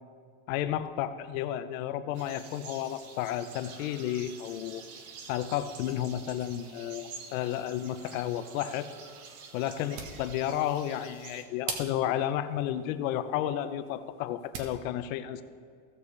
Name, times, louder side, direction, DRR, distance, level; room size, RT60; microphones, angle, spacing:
voice 1, 0.5-4.8 5.3-8.9 9.5-15.4, left 11 dB, 70° left, 11 dB, 0.8 m, -32 dB
sound 1, 2.1-11.4, right 5 dB, 80° right, 1.4 m, -48 dB
sound 2, 9.7-14.8, right 5 dB, 55° right, 1.4 m, -44 dB
16.0 x 6.9 x 3.3 m, 2.2 s
supercardioid pair, 145°, 43 cm